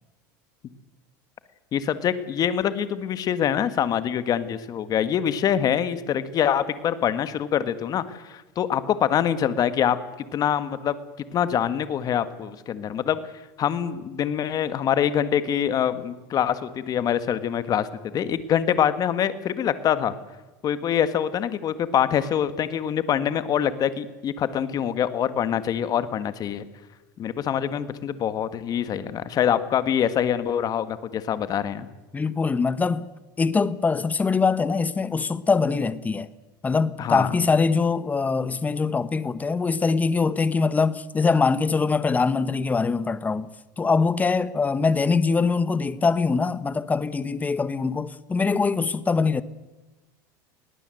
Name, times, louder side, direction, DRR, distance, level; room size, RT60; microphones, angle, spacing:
voice 1, 1.7-10.0 10.3-11.0 11.3-13.2 13.6-20.1 20.6-26.6 27.2-31.9 37.0-37.3, left 9 dB, 35° left, 1.8 m, -25 dB
voice 2, 32.1-33.0 33.4-36.3 36.6-43.5 43.8-49.4, left 4 dB, 15° left, 0.9 m, -23 dB
21.5 x 18.0 x 7.9 m
supercardioid pair, 130°, 11 cm